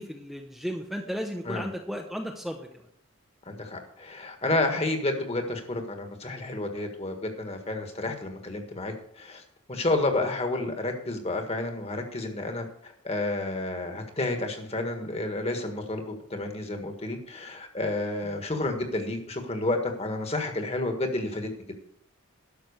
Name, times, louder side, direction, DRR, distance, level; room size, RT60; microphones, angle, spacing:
voice 1, 0.0-2.8, equal, ahead, 1 dB, 0.7 m, -34 dB
voice 2, 3.5-9.4 9.7-21.5, left 2 dB, 30° left, 5 dB, 1.6 m, -30 dB
12.0 x 6.1 x 6.6 m, 0.70 s
head